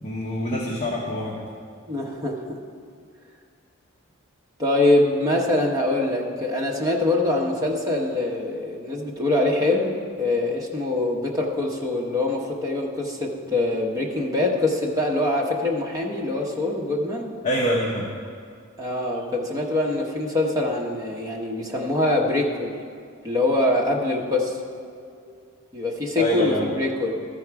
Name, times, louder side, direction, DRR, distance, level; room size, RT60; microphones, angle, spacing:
voice 1, 0.0-1.5 17.4-18.1 25.2-25.3 26.1-26.7, equal, 30° left, -3 dB, 0.8 m, -25 dB
voice 2, 1.9-2.6 4.6-9.9 10.2-17.3 18.8-22.7 23.2-24.6 25.7-27.1, left 2 dB, 15° right, -2 dB, 1.0 m, -24 dB
13.5 x 4.6 x 4.7 m, 2.3 s
head